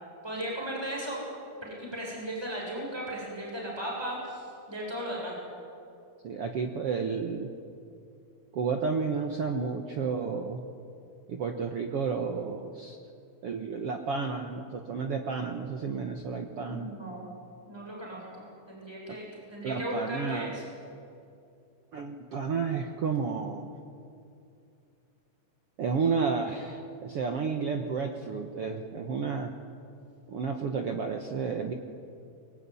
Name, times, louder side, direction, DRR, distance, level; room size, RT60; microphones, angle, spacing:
voice 1, 0.2-1.2 1.6-5.4 16.7-17.3 17.7-20.6, equal, 5° right, -3 dB, 7.3 m, -36 dB
voice 2, 6.2-7.5 8.5-10.6 11.3-13.0 13.4-16.9 19.6-20.6 21.9-23.7 25.8-29.5 30.3-31.7, right 5 dB, 60° right, 4 dB, 1.6 m, -31 dB
24.0 x 22.0 x 9.7 m, 2.6 s
omnidirectional pair, 4.2 m